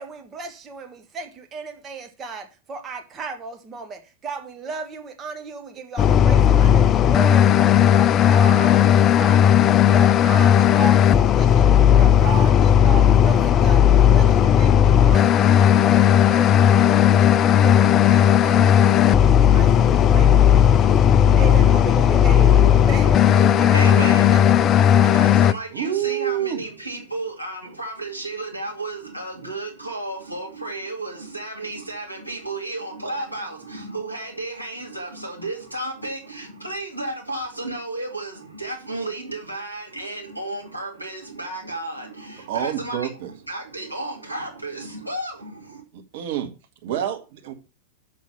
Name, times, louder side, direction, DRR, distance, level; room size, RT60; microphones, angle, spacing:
voice 1, 0.0-25.4 33.0-33.3, right 5 dB, 25° right, 1.5 m, -35 dB
sound 1, 6.0-25.5, left 9 dB, 30° left, 0.4 m, -15 dB
voice 2, 23.5-24.6 25.1-43.1 43.5-45.8, right 2 dB, 90° right, 2.3 m, -33 dB
voice 3, 25.7-26.6 42.5-43.3 45.9-46.5 46.8-47.5, right 11 dB, 50° right, 2.0 m, -27 dB
6.9 x 6.4 x 7.0 m
figure-of-eight pair, 90°, 0 cm